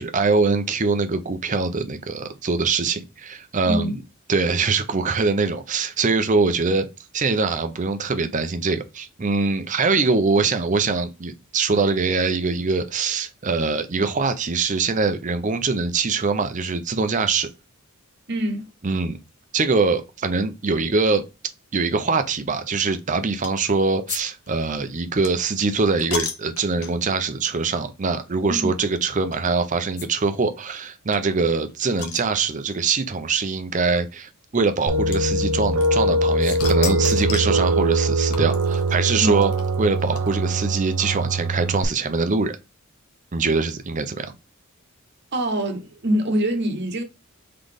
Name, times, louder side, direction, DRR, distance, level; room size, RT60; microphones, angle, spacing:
voice 1, 0.0-4.0 4.3-6.9 7.1-17.5 18.8-19.2 19.5-21.2 21.7-39.5 39.8-42.6 43.3-44.3, right 4 dB, 35° right, 0.6 m, -23 dB
voice 2, 18.3-18.7 28.5-28.7 39.1-39.4 45.3-47.0, right 1 dB, 50° right, 1.0 m, -24 dB
sound 1, 23.4-23.7 24.1-24.2 24.5-27.2 27.8-27.9 28.2-28.3 29.3-29.5 30.0-30.1 30.3-30.4 30.6-30.7 31.1-32.8 33.7-33.8 35.1-36.1 36.4-37.6 38.3-40.6, left 7 dB, 90° left, 1.0 m, -34 dB
sound 2, 34.9-41.8, right 1 dB, 80° right, 0.8 m, -22 dB
3.9 x 3.8 x 3.4 m
head